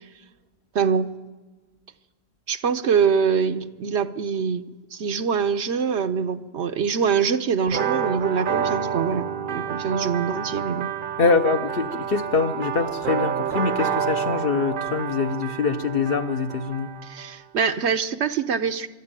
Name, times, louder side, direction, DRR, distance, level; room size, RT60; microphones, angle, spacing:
voice 1, 0.7-1.1 2.5-4.7 4.9-10.9 17.0-18.9, right 6 dB, 80° right, 1.1 m, -24 dB
sound 1, 7.7-17.3, right 7 dB, 55° right, 0.9 m, -28 dB
voice 2, 11.2-16.9, left 4 dB, 60° left, 1.1 m, -24 dB
24.0 x 12.5 x 8.9 m
omnidirectional pair, 1.1 m